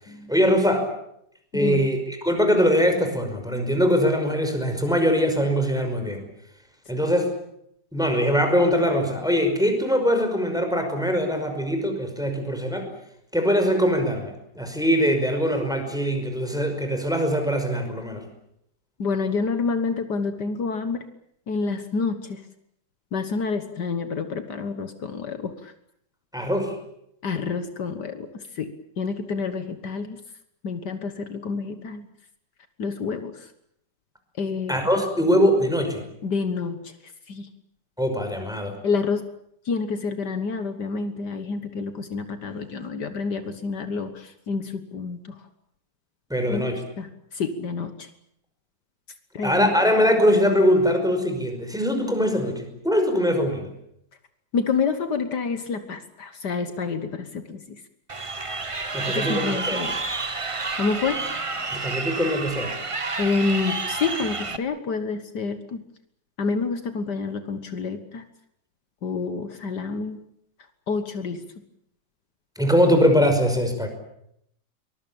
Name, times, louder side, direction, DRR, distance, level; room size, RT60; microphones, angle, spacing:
voice 1, 0.3-0.9 1.5-6.2 6.9-7.3 7.9-12.9 13.3-18.2 26.3-26.8 34.7-36.0 38.0-38.8 46.3-46.8 49.4-53.7 58.9-59.9 61.7-62.7 72.6-73.9, equal, ahead, 5 dB, 5.3 m, -22 dB
voice 2, 1.5-1.9 19.0-21.1 21.5-22.4 23.1-25.7 27.2-28.7 29.0-30.2 30.6-32.1 32.8-33.5 34.4-35.0 36.2-37.5 38.8-39.2 39.7-45.4 46.5-46.6 47.0-48.1 49.3-49.8 54.5-57.8 59.1-60.0 60.8-61.2 63.2-65.8 66.4-68.3 69.0-70.2 70.9-71.4, left 4 dB, 70° left, 9 dB, 2.0 m, -28 dB
Crowd, 58.1-64.6, right 3 dB, 25° right, 0.9 m, -30 dB
23.5 x 21.5 x 8.8 m, 0.75 s
omnidirectional pair, 1.9 m